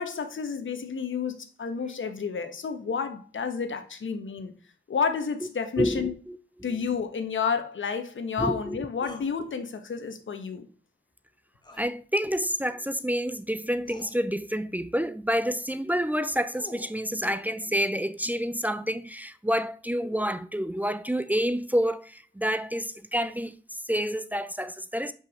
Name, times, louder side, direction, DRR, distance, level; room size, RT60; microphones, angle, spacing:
voice 1, 0.0-4.5 4.9-6.1 6.6-10.7, left 6 dB, 80° left, 1.3 m, -30 dB
voice 2, 5.8-6.8 8.4-8.8 11.8-25.1, equal, 10° right, 0.6 m, -28 dB
sound 1, 9.0-9.3 11.6-11.9 13.2-13.3 13.8-14.1 16.1-17.0, left 1 dB, 20° left, 1.9 m, -46 dB
5.6 x 5.6 x 6.4 m
cardioid pair, 65°, 20 cm